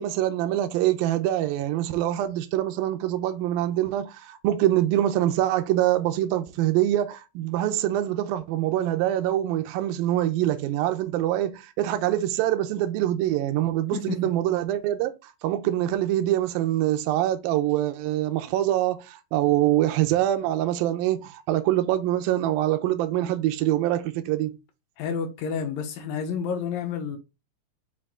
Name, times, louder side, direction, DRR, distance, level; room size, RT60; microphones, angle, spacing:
voice 1, 0.0-24.5, right 13 dB, 80° right, 2.4 m, -24 dB
voice 2, 25.0-27.2, left 6 dB, 75° left, 2.6 m, -30 dB
6.0 x 4.6 x 3.7 m
omnidirectional pair, 4.3 m